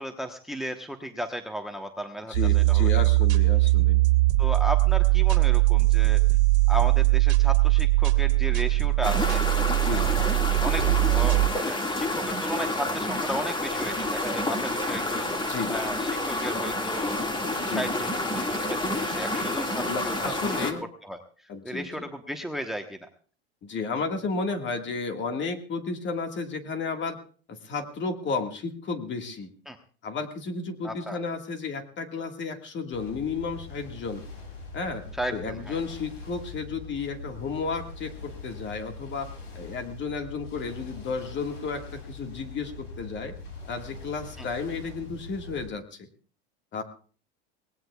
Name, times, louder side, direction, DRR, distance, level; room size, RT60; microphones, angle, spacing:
voice 1, 0.0-2.9 4.4-6.2 6.7-9.4 9.9-10.2 10.6-17.2 17.6-20.7 21.0-21.2 21.6-23.1 29.7-29.8 30.8-31.2 35.2-35.8 44.4-44.5, equal, ahead, 6 dB, 1.1 m, -35 dB
voice 2, 2.3-4.0 9.8-10.1 15.5-15.7 17.5-17.9 19.9-20.8 21.5-22.1 23.6-27.2 27.5-29.5 30.0-34.2 34.7-35.0 35.3-39.3 39.6-43.4 43.7-46.1 46.7-46.8, left 4 dB, 35° left, 6 dB, 1.9 m, -33 dB
sound 1, 2.3-11.5, right 21 dB, 80° right, 1.7 m, -21 dB
sound 2, 9.0-20.7, left 1 dB, 15° left, 2.1 m, -29 dB
sound 3, 32.9-45.7, left 3 dB, 80° left, 7.9 m, -42 dB
23.5 x 18.5 x 2.4 m, 0.41 s
supercardioid pair, 110°, 33 cm